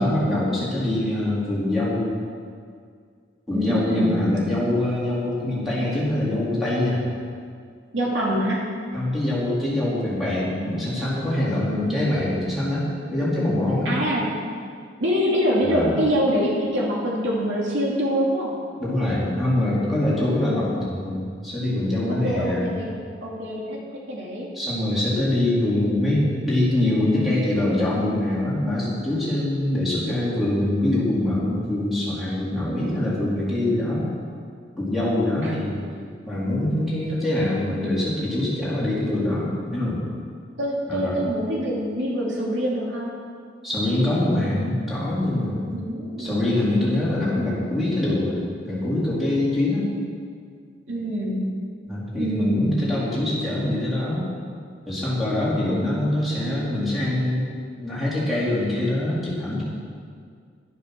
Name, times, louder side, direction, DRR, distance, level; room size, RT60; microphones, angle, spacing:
voice 1, 0.0-2.1 3.5-7.0 8.9-13.9 15.6-16.0 18.8-22.7 24.5-34.1 34.8-35.8 36.2-40.0 40.9-41.2 43.6-45.7 46.2-49.9 51.9-54.3 54.9-57.5 57.8-59.6, left 1 dB, ahead, -9 dB, 3.9 m, -24 dB
voice 2, 3.5-4.3 7.9-8.6 13.8-14.3 15.0-18.5 20.2-20.3 22.1-23.8 24.1-24.5 32.7-33.1 35.4-35.5 40.6-43.1 45.7-46.7 50.9-51.5 52.1-52.7 55.7-55.8, equal, 75° right, -4 dB, 2.6 m, -25 dB
11.5 x 11.0 x 6.7 m, 2.1 s
head